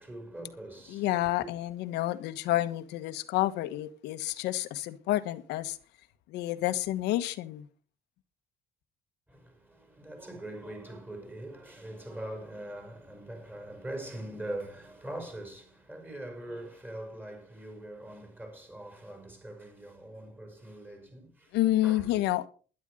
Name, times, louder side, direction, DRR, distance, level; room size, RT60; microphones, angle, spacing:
voice 1, 0.0-1.3 9.3-21.5 21.8-22.1, right 1 dB, 10° right, 5.9 m, -42 dB
voice 2, 0.9-5.8 6.3-7.7 21.5-22.5, left 15 dB, 90° left, 1.3 m, -29 dB
12.5 x 11.0 x 5.0 m
cardioid pair, 110°, 17 cm